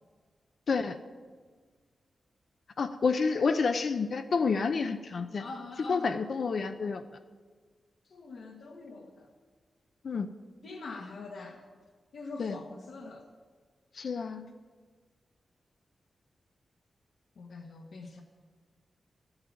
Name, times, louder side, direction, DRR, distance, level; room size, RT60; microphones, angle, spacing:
voice 1, 0.7-1.0 2.8-5.4 5.9-7.0 10.0-10.3 12.4-12.5 13.9-14.5, left 5 dB, 55° left, 7 dB, 0.6 m, -29 dB
voice 2, 5.4-6.1 8.0-9.3 10.6-11.6 12.1-13.3 17.4-18.2, left 3 dB, 75° left, -1 dB, 1.5 m, -43 dB
13.5 x 8.8 x 9.6 m, 1.5 s
wide cardioid pair, 150°, 0 cm